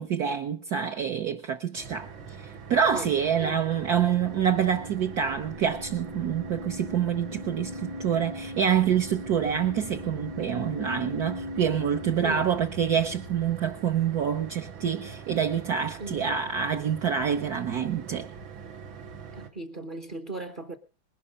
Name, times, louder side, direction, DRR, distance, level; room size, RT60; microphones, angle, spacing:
voice 1, 0.0-2.1 2.4-18.3, right 8 dB, 60° right, 1.3 m, -27 dB
sound 1, 1.8-19.5, right 6 dB, 85° right, 2.3 m, -43 dB
sound 2, 3.4-13.5, left 2 dB, 60° left, 0.4 m, -40 dB
voice 2, 12.2-12.5 16.0-16.4 19.3-20.8, right 3 dB, 30° right, 1.0 m, -37 dB
20.0 x 11.0 x 5.2 m
omnidirectional pair, 2.1 m